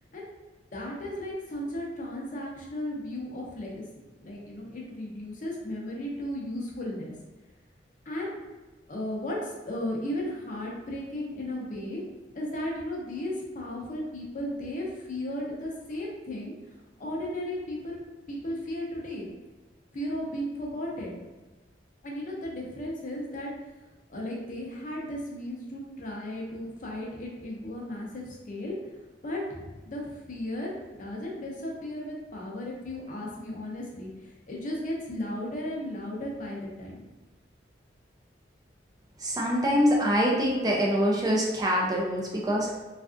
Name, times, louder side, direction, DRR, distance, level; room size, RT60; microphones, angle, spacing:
voice 1, 0.7-7.1 8.1-8.4 8.9-12.0 12.3-16.5 17.0-18.0 18.3-19.3 19.9-21.2 22.0-23.5 24.1-28.8 29.2-37.1, left 1 dB, 45° left, -2 dB, 0.6 m, -35 dB
voice 2, 39.2-42.8, equal, 20° right, -3 dB, 0.4 m, -25 dB
3.3 x 2.4 x 2.5 m, 1.1 s
head